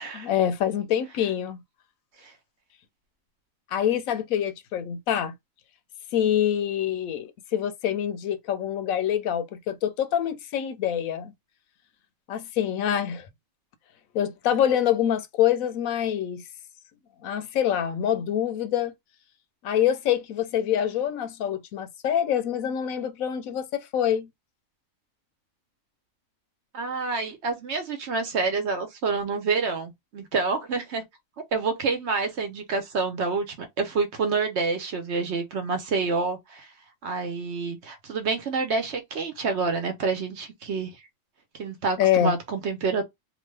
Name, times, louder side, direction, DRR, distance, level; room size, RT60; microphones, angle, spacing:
voice 1, 0.1-1.6 3.7-5.3 6.1-11.3 12.3-13.3 14.1-16.4 17.2-18.9 19.6-24.3 42.0-42.4, left 10 dB, 80° left, 1.0 m, -25 dB
voice 2, 26.7-31.0 31.5-36.7 37.0-40.9 41.6-43.0, right 4 dB, 60° right, 0.9 m, -28 dB
2.9 x 2.2 x 3.2 m
omnidirectional pair, 1.4 m